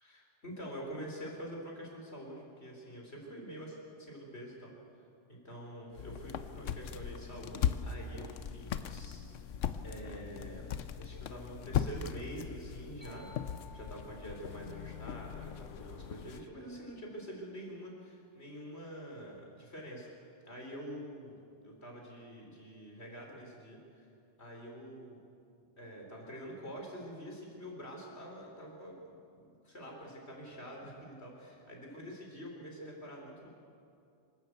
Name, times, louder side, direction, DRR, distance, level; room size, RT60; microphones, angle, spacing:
voice 1, 0.0-4.7 5.3-9.3 9.8-20.1 20.5-21.4 21.6-24.1 24.4-25.2 25.8-29.0 29.6-33.5, equal, 60° left, -1 dB, 4.4 m, -46 dB
sound 1, 5.9-16.5, left 8 dB, 85° left, 1.1 m, -39 dB
sound 2, 13.0-16.7, left 3 dB, 10° right, 5.0 m, -59 dB
27.0 x 12.5 x 8.1 m, 2.5 s
omnidirectional pair, 1.2 m